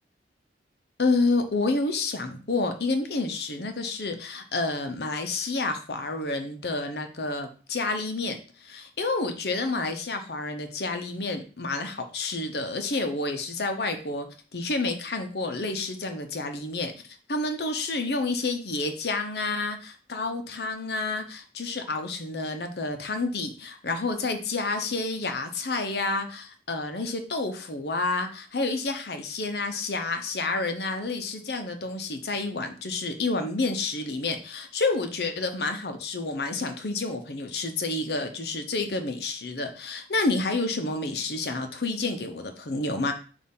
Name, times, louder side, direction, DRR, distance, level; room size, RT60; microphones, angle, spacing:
voice 1, 1.0-14.3 14.5-16.9 17.3-43.1, left 3 dB, 65° left, 7 dB, 0.9 m, -29 dB
6.5 x 2.7 x 5.5 m, 0.38 s
head